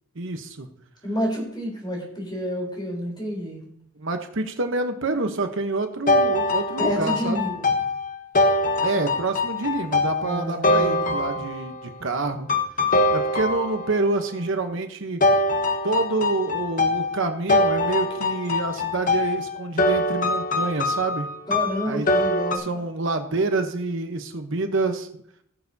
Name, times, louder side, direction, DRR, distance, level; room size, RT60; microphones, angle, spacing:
voice 1, 0.1-0.7 4.0-7.4 8.8-12.5 13.1-15.2 15.8-21.3 21.9-22.1 22.5-25.1, right 3 dB, 65° right, 6 dB, 1.0 m, -27 dB
voice 2, 1.0-3.6 6.8-7.7 10.2-11.2 21.5-22.6, equal, 20° left, -1 dB, 3.8 m, -29 dB
sound 1, 6.1-11.8 12.5-14.1 15.2-22.6, left 2 dB, 40° left, 1.0 m, -23 dB
19.0 x 6.8 x 2.8 m, 0.68 s
head